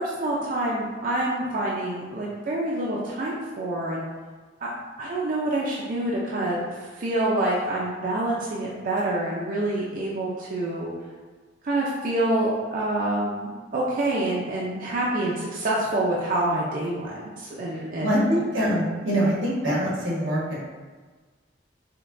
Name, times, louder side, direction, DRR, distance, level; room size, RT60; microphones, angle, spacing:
voice 1, 0.0-4.0 4.6-4.7 5.0-6.6 6.9-10.9 11.6-18.3, right 1 dB, 45° right, -5 dB, 0.5 m, -27 dB
voice 2, 18.0-20.7, equal, 85° right, -6 dB, 1.3 m, -24 dB
5.1 x 2.2 x 2.6 m, 1.4 s
head